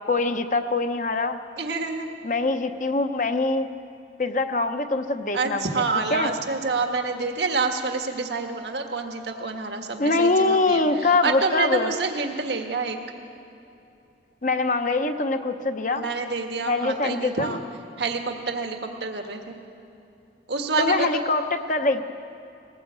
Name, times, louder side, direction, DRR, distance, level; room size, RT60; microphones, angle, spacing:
voice 1, 0.1-1.4 2.2-3.7 4.2-5.7 6.1-6.3 10.0-11.9 14.4-16.1 16.7-17.6 20.8-22.1, left 3 dB, 45° left, 7 dB, 0.9 m, -23 dB
voice 2, 1.6-2.1 5.3-13.0 15.9-17.6 18.0-19.6 20.5-21.2, right 4 dB, 75° right, 4 dB, 1.6 m, -28 dB
21.0 x 17.5 x 8.2 m, 2.8 s
head